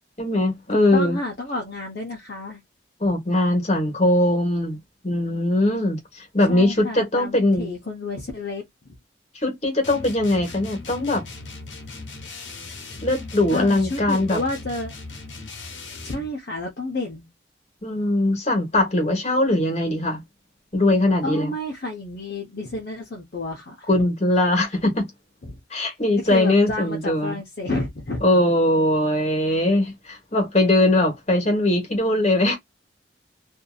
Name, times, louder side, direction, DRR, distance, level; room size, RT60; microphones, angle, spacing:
voice 1, 0.2-1.2 3.0-4.8 5.0-7.7 9.4-11.2 13.0-14.4 17.8-20.2 20.7-21.5 23.9-25.1 25.7-27.4 28.2-32.6, left 1 dB, 35° left, 1.3 m, -21 dB
voice 2, 0.7-2.6 6.5-8.6 13.5-14.9 16.0-17.3 21.2-23.9 25.4-25.6 26.3-28.2, left 2 dB, 55° left, 0.7 m, -30 dB
sound 1, 9.8-16.3, left 3 dB, 85° left, 1.0 m, -38 dB
2.7 x 2.6 x 2.3 m
head